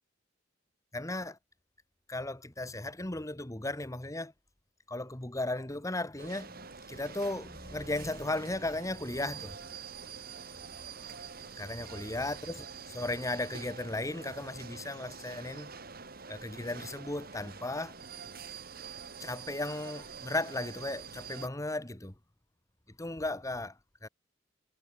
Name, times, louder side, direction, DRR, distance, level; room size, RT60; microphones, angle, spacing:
voice 1, 0.9-1.4 2.1-4.3 4.9-9.6 10.4-10.5 10.8-11.2 11.6-15.7 16.3-17.9 19.2-22.1 23.0-24.1, left 2 dB, 20° left, 1.6 m, -36 dB
sound 1, 6.2-21.5, right 5 dB, 55° right, 4.1 m, -46 dB
head